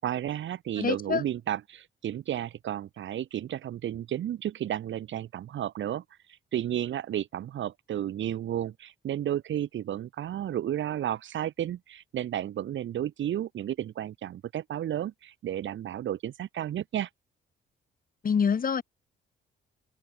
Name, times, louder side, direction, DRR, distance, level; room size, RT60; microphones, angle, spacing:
voice 1, 0.0-6.0 6.5-17.1, right 11 dB, 70° right, 7.0 m, -32 dB
voice 2, 0.8-1.2 18.2-18.8, left 6 dB, 45° left, 6.8 m, -26 dB
open air
cardioid pair, 90°, 20 cm